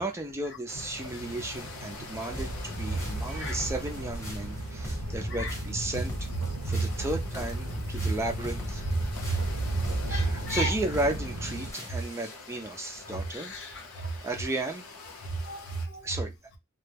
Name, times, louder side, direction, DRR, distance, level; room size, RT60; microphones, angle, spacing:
voice 1, 0.0-6.1 6.5-8.9 10.1-13.5 14.2-14.8 16.0-16.3, right 2 dB, 10° right, 0.3 m, -34 dB
sound 1, 0.7-15.9, left 3 dB, 85° left, 0.7 m, -46 dB
sound 2, 0.7-11.7, right 1 dB, 85° right, 0.7 m, -36 dB
sound 3, 2.3-12.4, equal, 15° left, 0.8 m, -41 dB
voice 2, 9.7-10.7 13.3-14.2 15.4-16.1, right 2 dB, 55° left, 0.7 m, -32 dB
2.2 x 2.0 x 3.1 m
head